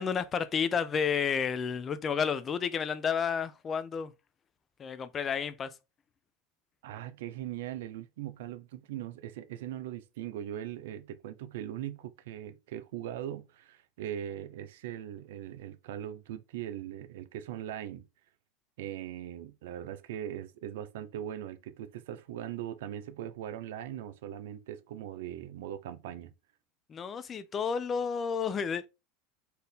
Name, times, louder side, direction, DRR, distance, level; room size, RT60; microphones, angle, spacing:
voice 1, 0.0-4.1 4.8-5.7 26.9-28.9, left 6 dB, 30° left, 0.5 m, -31 dB
voice 2, 6.8-18.1 18.8-26.3, right 11 dB, 80° right, 0.6 m, -40 dB
4.2 x 2.7 x 3.5 m
supercardioid pair, 120°, 0 cm